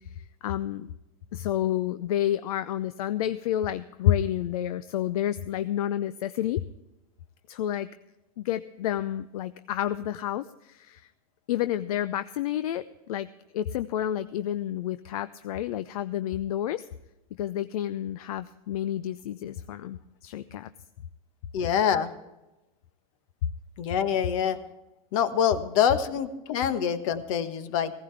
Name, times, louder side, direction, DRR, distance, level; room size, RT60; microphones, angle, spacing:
voice 1, 0.2-0.9 1.3-6.6 7.5-7.9 8.4-11.1 11.5-13.3 13.5-16.9 17.4-20.7, left 11 dB, 80° left, 13 dB, 0.6 m, -30 dB
voice 2, 21.5-22.1 23.8-24.6 25.1-27.9, left 8 dB, 65° left, 11 dB, 1.3 m, -25 dB
16.5 x 15.0 x 3.3 m, 0.99 s
supercardioid pair, 130°, 18 cm